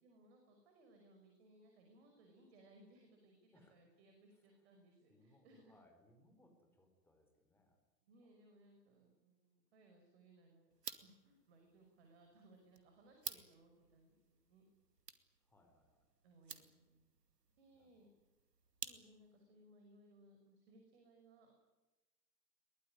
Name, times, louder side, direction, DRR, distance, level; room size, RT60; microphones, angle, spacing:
voice 1, 0.0-5.8 8.0-10.7 11.0-14.6 16.2-17.1 17.6-18.1 18.9-21.5, right 1 dB, 40° right, 3 dB, 5.6 m, -66 dB
voice 2, 3.5-3.8 5.1-7.8 8.2-8.3 15.5-16.1 17.7-18.1, left 1 dB, 5° left, 4 dB, 4.3 m, -70 dB
sound 1, 10.7-19.4, right 5 dB, 70° right, 2.4 m, -54 dB
22.5 x 20.5 x 9.9 m, 1.1 s
figure-of-eight pair, 125°, 49 cm